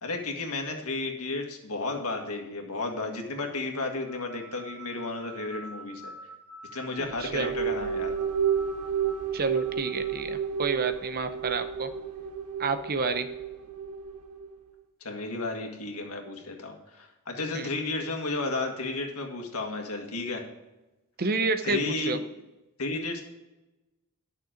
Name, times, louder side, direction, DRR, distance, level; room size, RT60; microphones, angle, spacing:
voice 1, 0.0-6.1 6.7-8.1 15.0-20.4 21.6-22.2 22.8-23.2, left 3 dB, 75° left, 3 dB, 1.8 m, -33 dB
sound 1, 4.1-10.4, right 2 dB, 10° left, 1.7 m, -47 dB
sound 2, 7.0-14.5, right 7 dB, 85° right, 1.2 m, -31 dB
voice 2, 7.2-7.5 9.3-11.9 12.6-13.3 17.5-17.7 21.2-22.2, right 4 dB, 45° right, 10 dB, 0.7 m, -29 dB
11.5 x 6.5 x 5.1 m, 1.0 s
head